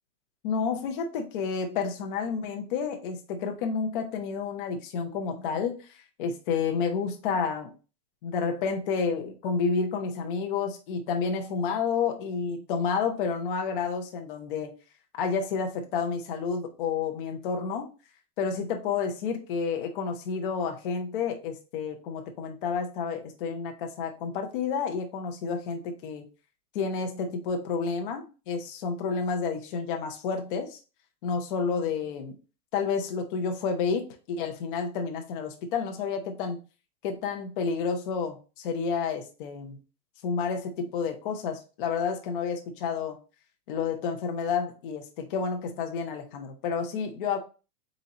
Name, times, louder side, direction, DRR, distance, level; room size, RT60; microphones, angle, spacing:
voice 1, 0.4-5.8 6.2-7.7 8.2-14.7 15.2-17.9 18.4-26.3 26.7-30.8 31.2-32.4 32.7-36.6 37.0-39.8 40.2-43.2 43.7-47.4, left 5 dB, 35° left, 4 dB, 0.6 m, -30 dB
4.0 x 4.0 x 2.8 m, 0.33 s
supercardioid pair, 170°, 49 cm